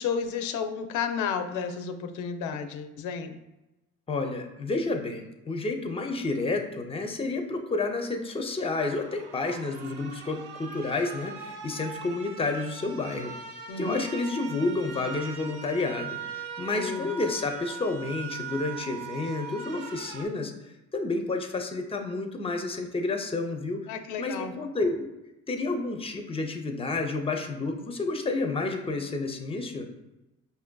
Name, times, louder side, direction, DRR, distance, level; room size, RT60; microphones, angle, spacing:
voice 1, 0.0-3.4 13.7-14.0 16.7-17.1 23.9-24.5, left 6 dB, 80° left, 7 dB, 0.5 m, -32 dB
voice 2, 4.1-13.3 13.8-20.5 20.9-23.9 24.2-24.9 25.5-29.9, left 3 dB, 20° left, 4 dB, 0.5 m, -30 dB
sound 1, 8.7-20.2, right 6 dB, 80° right, 0.6 m, -41 dB
5.3 x 2.5 x 2.2 m, 0.99 s
cardioid pair, 90°, 30 cm